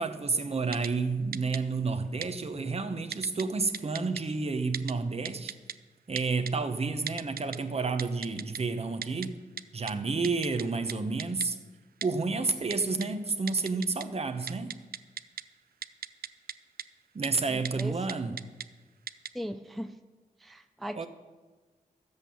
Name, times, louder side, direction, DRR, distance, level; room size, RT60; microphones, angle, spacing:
voice 1, 0.0-5.5 6.1-9.4 9.7-11.6 12.0-14.8 17.1-18.4 20.9-21.1, right 4 dB, 40° right, 9 dB, 0.9 m, -30 dB
Typing, 0.7-0.9 1.3-1.6 2.2-2.3 3.1-3.4 3.7-4.2 4.7-4.9 5.3-5.7 6.2-6.5 7.1-7.6 8.0-8.6 9.0-9.3 9.6-9.7 9.9-10.0 10.2-10.6 10.9-11.0 11.2-11.5 12.0-12.1 12.7-13.1 13.5-14.1 14.4-15.4 15.8-16.5 16.8-16.9 17.2-17.3 17.7-17.8 18.1-18.7 19.1-19.3, right 8 dB, 80° right, 0.4 m, -37 dB
voice 2, 17.5-17.9 19.3-19.9 20.4-21.1, equal, ahead, 8 dB, 0.4 m, -38 dB
13.0 x 8.2 x 7.0 m, 1.3 s
wide cardioid pair, 130°, 15 cm